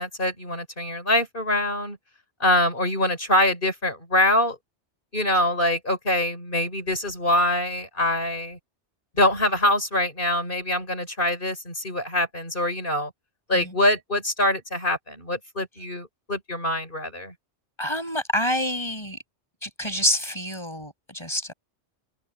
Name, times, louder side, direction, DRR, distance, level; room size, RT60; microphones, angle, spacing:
voice 1, 0.0-2.0 2.4-4.6 5.1-8.6 9.1-13.1 13.5-17.3, left 1 dB, 50° left, 6.3 m, -24 dB
voice 2, 17.8-19.2 19.6-21.5, equal, 25° left, 8.0 m, -27 dB
omnidirectional pair, 1.2 m